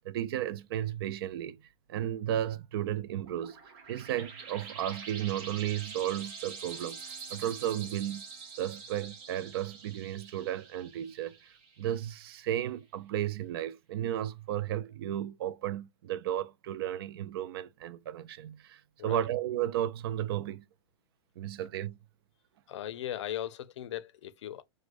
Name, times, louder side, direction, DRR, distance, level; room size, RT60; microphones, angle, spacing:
voice 1, 0.0-1.6 1.9-3.6 3.9-7.0 7.3-8.2 8.6-11.4 11.8-20.6 21.4-22.0, right 11 dB, 55° right, 0.4 m, -34 dB
sound 1, 3.1-12.3, right 5 dB, 30° right, 0.9 m, -46 dB
voice 2, 22.7-24.6, left 11 dB, 85° left, 0.5 m, -38 dB
4.6 x 2.1 x 2.4 m
supercardioid pair, 170°, 15 cm